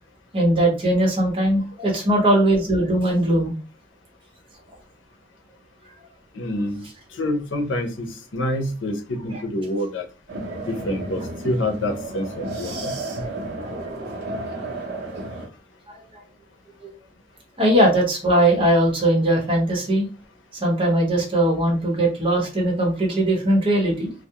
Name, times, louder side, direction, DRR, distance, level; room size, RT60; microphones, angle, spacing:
voice 1, 0.3-3.5 9.3-9.4 13.6-13.8 15.9-16.0 16.8-16.9 17.6-20.1 20.6-24.1, right 1 dB, 30° right, -2 dB, 0.9 m, -20 dB
voice 2, 6.3-6.8 7.1-10.1 10.7-13.3, left 1 dB, 80° left, 4 dB, 0.6 m, -27 dB
sound 1, 10.3-15.5, right 2 dB, 60° right, 0.7 m, -32 dB
2.3 x 2.0 x 2.8 m, 0.33 s
head